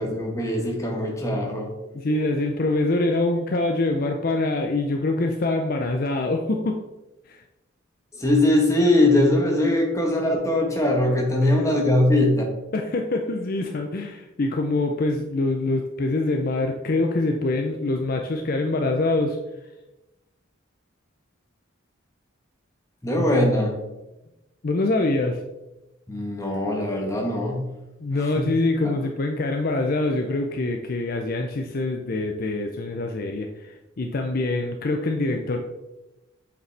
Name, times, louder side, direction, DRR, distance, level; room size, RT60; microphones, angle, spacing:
voice 1, 0.0-1.7 2.1-2.2 8.1-12.4 23.0-23.8 26.1-27.7 28.1-28.5 28.8-29.0, left 1 dB, 15° left, 0 dB, 1.2 m, -21 dB
voice 2, 1.9-6.9 7.3-7.4 11.4-11.5 12.7-19.4 24.6-25.4 28.0-35.6, left 2 dB, 45° left, 4 dB, 0.5 m, -25 dB
7.8 x 5.1 x 3.3 m, 0.99 s
head